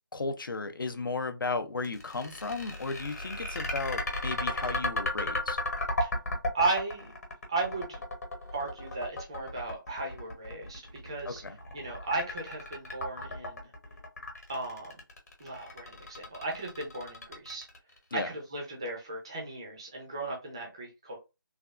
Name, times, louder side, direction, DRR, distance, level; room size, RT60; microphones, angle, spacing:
voice 1, 0.1-5.6 11.3-11.6 18.1-18.3, left 3 dB, 70° left, 0.6 m, -35 dB
sound 1, 1.8-18.0, left 1 dB, 45° left, 1.0 m, -34 dB
voice 2, 6.5-7.1 7.5-8.0 8.5-11.4 11.7-13.7 14.5-15.0 15.4-17.7 18.1-21.2, right 3 dB, 15° right, 0.4 m, -35 dB
3.3 x 2.3 x 2.4 m
figure-of-eight pair, 170°, 12 cm